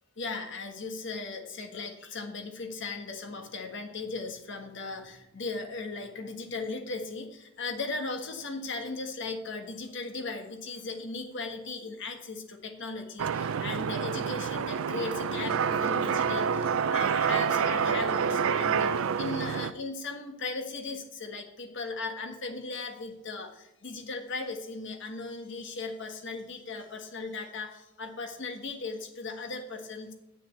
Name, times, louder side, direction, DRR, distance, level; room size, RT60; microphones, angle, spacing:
voice 1, 0.2-30.1, left 3 dB, 60° left, 5 dB, 1.5 m, -37 dB
sound 1, 13.2-19.7, right 7 dB, 75° right, 0.4 m, -28 dB
Wind instrument woodwind instrument, 14.9-19.9, equal, 20° right, 0.9 m, -41 dB
7.9 x 6.4 x 8.0 m, 0.88 s
head